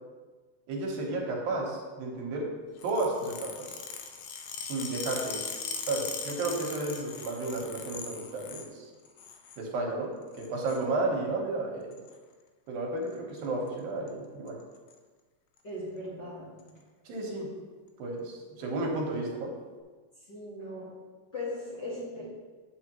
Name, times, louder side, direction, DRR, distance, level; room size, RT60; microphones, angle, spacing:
voice 1, 0.7-2.5 2.8-3.8 4.6-5.4 5.9-8.9 9.6-10.1 10.4-11.9 12.7-14.6 17.1-17.5 18.0-19.5, right 2 dB, 80° right, -1 dB, 3.0 m, -32 dB
sound 1, 2.8-8.7 9.0-9.6 10.3-10.8 11.9-12.1 13.1-13.4 13.7-13.8 14.1-14.2 14.5-14.9 15.6-15.7 16.6-16.7, left 6 dB, 90° left, 1.5 m, -40 dB
voice 2, 15.6-16.8 20.3-20.9 21.3-22.2, left 1 dB, 40° left, -9 dB, 1.8 m, -38 dB
8.3 x 7.8 x 3.0 m, 1.4 s
omnidirectional pair, 4.0 m